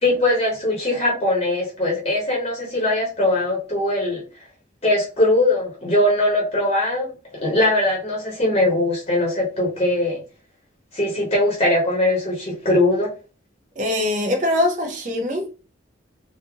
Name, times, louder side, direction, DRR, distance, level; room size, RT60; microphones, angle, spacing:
voice 1, 0.0-4.2 4.8-10.2 10.9-13.1, left 1 dB, 30° left, 1.0 m, -21 dB
voice 2, 13.8-15.5, left 1 dB, 40° right, 0.7 m, -22 dB
3.4 x 2.7 x 3.4 m
head